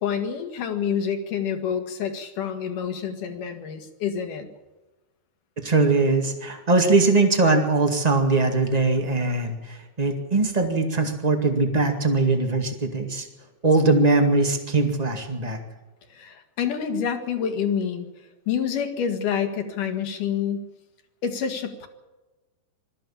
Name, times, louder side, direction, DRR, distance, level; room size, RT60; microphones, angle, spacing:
voice 1, 0.0-4.5 16.1-18.1 18.5-20.7 21.2-21.9, left 7 dB, 55° left, 6 dB, 3.3 m, -27 dB
voice 2, 5.6-13.3 13.6-15.6, right 3 dB, 75° right, 3 dB, 0.3 m, -21 dB
22.5 x 14.0 x 8.7 m, 1.1 s
omnidirectional pair, 4.8 m